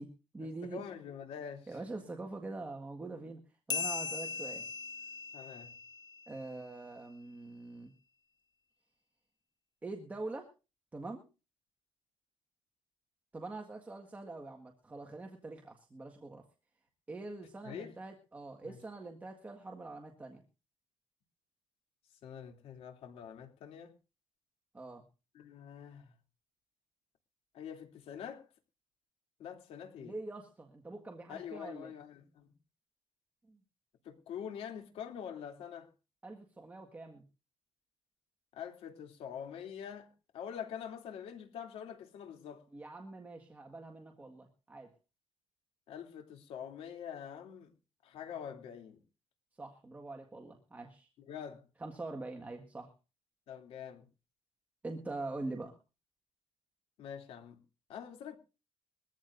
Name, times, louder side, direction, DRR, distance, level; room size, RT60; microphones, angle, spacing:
voice 1, 0.0-0.8 1.7-3.4 3.7-4.6 6.3-7.9 9.8-10.5 10.9-11.2 13.3-16.4 17.1-20.4 24.7-25.0 30.0-31.9 33.5-33.6 36.2-37.2 42.7-44.9 49.6-51.1 51.8-52.9 54.8-55.7, right 2 dB, 15° right, 1.7 m, -44 dB
voice 2, 0.6-1.7 2.0-2.1 5.3-5.7 17.6-17.9 18.6-18.8 22.2-23.9 25.3-26.1 27.5-28.4 29.4-30.2 31.3-32.5 34.0-35.9 38.5-42.6 45.9-47.7 48.0-49.0 51.3-51.6 53.5-54.1 57.0-57.6 57.9-58.4, left 8 dB, 80° left, 3.0 m, -45 dB
sound 1, 3.7-6.7, left 6 dB, 45° left, 0.7 m, -39 dB
22.0 x 15.0 x 2.6 m
cardioid pair, 160°, 10 cm